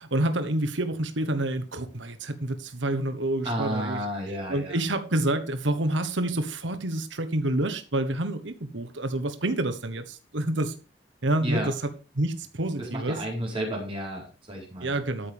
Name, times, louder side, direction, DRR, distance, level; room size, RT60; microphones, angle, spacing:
voice 1, 0.0-4.0 4.5-10.8 11.2-11.7 12.2-13.2 14.8-15.3, right 1 dB, 85° right, 1.3 m, -28 dB
voice 2, 3.4-4.8 11.4-11.7 12.8-15.0, right 1 dB, 30° right, 4.5 m, -32 dB
13.5 x 8.9 x 3.6 m
head